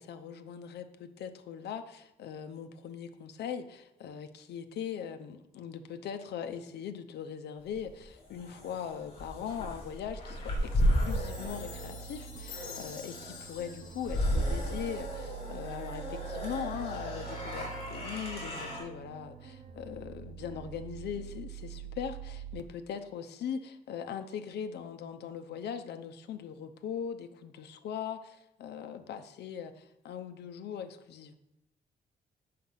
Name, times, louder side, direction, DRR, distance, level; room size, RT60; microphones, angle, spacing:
voice 1, 0.0-31.4, left 8 dB, 85° left, 7 dB, 0.8 m, -40 dB
sound 1, 7.7-18.8, equal, 35° left, 3.1 m, -34 dB
Chime, 10.8-15.2, left 6 dB, 50° left, 2.1 m, -49 dB
sound 2, 10.9-22.6, right 8 dB, 45° right, 0.5 m, -45 dB
7.7 x 6.5 x 5.7 m, 0.85 s
wide cardioid pair, 160°, 17 cm